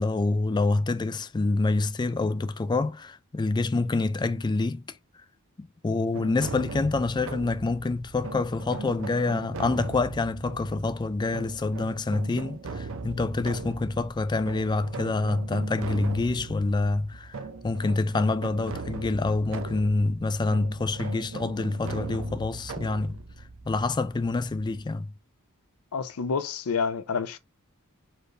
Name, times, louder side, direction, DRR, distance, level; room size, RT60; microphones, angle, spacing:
voice 1, 0.0-4.8 5.6-23.2 23.6-25.1, left 3 dB, 20° left, 0.3 m, -27 dB
sound 1, 6.1-24.8, right 3 dB, 65° right, 0.7 m, -39 dB
voice 2, 25.9-27.4, left 5 dB, 75° left, 0.6 m, -28 dB
4.3 x 2.6 x 4.8 m
head